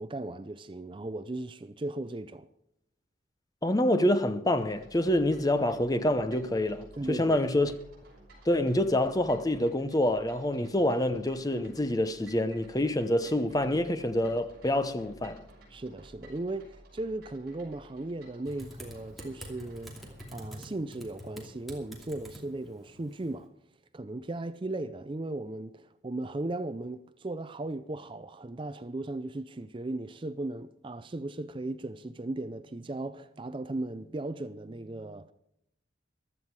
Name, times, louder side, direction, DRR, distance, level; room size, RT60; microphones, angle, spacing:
voice 1, 0.0-2.5 7.0-7.4 15.7-23.5 23.9-35.3, right 2 dB, 25° right, 0.4 m, -37 dB
voice 2, 3.6-7.7 8.5-15.4, left 1 dB, 20° left, 0.8 m, -27 dB
sound 1, 4.6-20.4, right 1 dB, 50° right, 6.1 m, -55 dB
Typing, 18.5-23.5, equal, ahead, 2.6 m, -47 dB
15.5 x 12.0 x 4.8 m
head